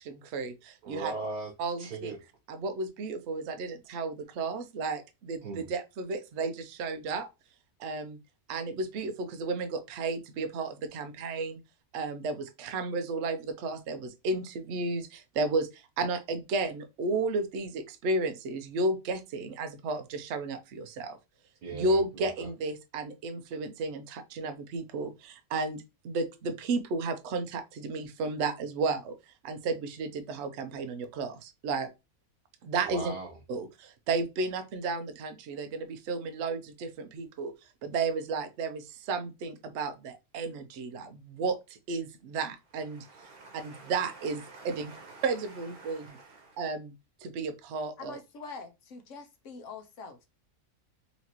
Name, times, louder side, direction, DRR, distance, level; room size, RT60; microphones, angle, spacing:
voice 1, 0.0-1.1 1.6-2.1 2.5-7.3 7.8-8.2 8.5-11.6 11.9-21.2 21.7-31.9 32.6-33.1 33.5-37.5 37.8-43.0 43.5-44.9 45.2-46.2 46.6-46.9 47.2-48.2, right 3 dB, 60° right, 0.8 m, -33 dB
voice 2, 0.8-1.5 1.8-2.2 5.4-5.7 21.6-22.5 32.8-33.3 42.9-45.2 45.8-46.6, right 4 dB, 85° right, 1.4 m, -41 dB
voice 3, 48.0-50.3, left 4 dB, 65° left, 1.0 m, -44 dB
4.3 x 2.9 x 2.9 m
omnidirectional pair, 1.5 m